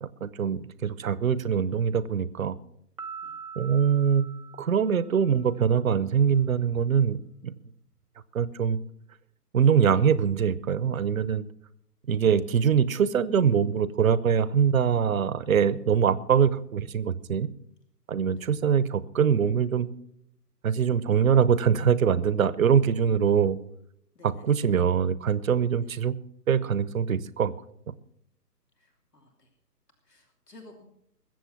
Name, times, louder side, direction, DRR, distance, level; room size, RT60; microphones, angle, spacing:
voice 1, 0.0-2.6 3.6-4.3 4.6-7.5 8.3-8.8 9.5-11.4 12.1-17.5 18.1-19.9 20.6-23.6 24.2-26.1 26.5-27.5, right 7 dB, 55° right, 17 dB, 0.9 m, -23 dB
Piano, 3.0-5.5, right 6 dB, 20° right, 0.5 m, -43 dB
voice 2, 28.8-29.5 30.1-30.9, left 2 dB, 75° left, 4 dB, 3.0 m, -53 dB
21.5 x 7.7 x 5.9 m, 0.73 s
figure-of-eight pair, 135°, 48 cm